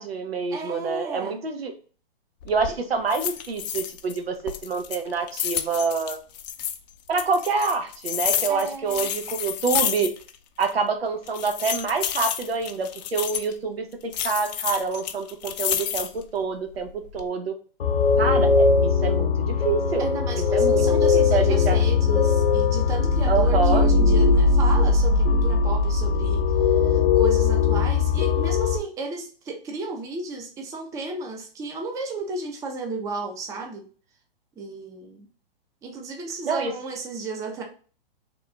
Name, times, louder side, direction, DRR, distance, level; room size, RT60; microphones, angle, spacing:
voice 1, 0.0-1.7 2.4-6.2 7.1-10.1 10.6-17.5 18.2-20.1 20.5-20.9 21.1-21.8 23.3-23.9 36.4-36.7, right 4 dB, 85° right, 5 dB, 0.9 m, -27 dB
voice 2, 0.5-1.4 8.5-9.1 20.0-33.8 34.6-35.3 35.8-37.6, right 3 dB, 10° right, 3 dB, 0.5 m, -34 dB
sound 1, 2.4-2.7 3.1-4.2 4.5-6.8 7.2-10.4 10.6-10.7 11.3-13.5 14.1-16.2 16.7-17.3, left 10 dB, 45° left, 0.5 m, -29 dB
sound 2, 17.8-28.8, left 4 dB, 75° left, 0.8 m, -20 dB
3.6 x 2.3 x 3.7 m, 0.40 s
hypercardioid pair, 130°, 29 cm